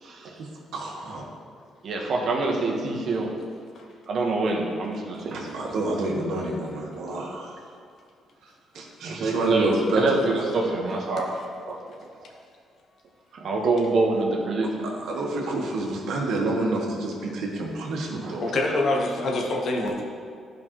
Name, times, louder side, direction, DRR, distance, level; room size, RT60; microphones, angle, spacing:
voice 1, 0.0-0.3 1.8-3.3 4.1-5.6 9.0-11.3 11.7-11.8 13.3-14.9 18.2-18.3, right 3 dB, 60° right, -1 dB, 1.4 m, -26 dB
voice 2, 0.7-1.2 5.5-7.5 8.7-10.1 15.1-18.4, right 2 dB, 80° right, -1 dB, 1.4 m, -28 dB
voice 3, 18.3-20.0, left 2 dB, 60° left, 0 dB, 1.3 m, -25 dB
12.0 x 5.2 x 3.1 m, 2.2 s
cardioid pair, 90°, 0 cm